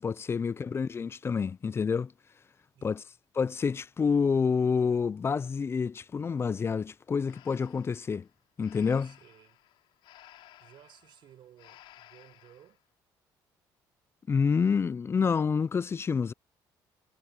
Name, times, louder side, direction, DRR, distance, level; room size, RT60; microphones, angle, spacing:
voice 1, 0.0-2.1 2.8-3.0 3.3-8.3 8.6-9.1 14.3-16.3, left 5 dB, 30° left, 0.4 m, -28 dB
Breathing, 7.2-12.8, left 14 dB, 75° left, 6.1 m, -57 dB
voice 2, 9.0-9.6 10.6-12.8, right 11 dB, 65° right, 7.5 m, -57 dB
cardioid pair, 95°, 9 cm